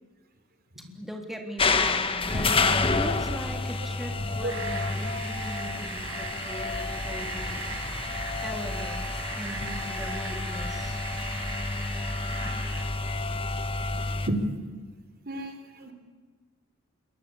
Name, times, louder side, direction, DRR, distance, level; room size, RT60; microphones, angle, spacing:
voice 1, 1.0-7.6 8.4-11.0, equal, ahead, 2 dB, 3.6 m, -39 dB
sound 1, 1.6-14.3, left 3 dB, 25° left, 1.6 m, -29 dB
sound 2, 4.5-12.8, right 5 dB, 75° right, 5.8 m, -39 dB
voice 2, 13.9-14.4 15.3-15.9, right 1 dB, 50° right, 7 dB, 3.8 m, -33 dB
28.5 x 23.0 x 8.8 m, 1.4 s
head